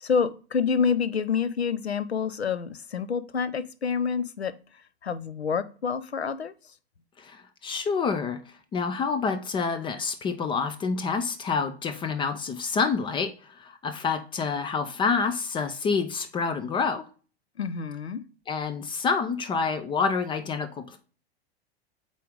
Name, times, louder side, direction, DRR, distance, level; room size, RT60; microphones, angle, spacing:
voice 1, 0.0-4.5 5.0-6.5 17.6-18.2, left 6 dB, 80° left, 13 dB, 0.6 m, -27 dB
voice 2, 7.2-17.1 18.5-21.0, left 5 dB, 15° left, 8 dB, 0.5 m, -28 dB
8.2 x 3.8 x 3.7 m, 0.37 s
figure-of-eight pair, 90°, 32 cm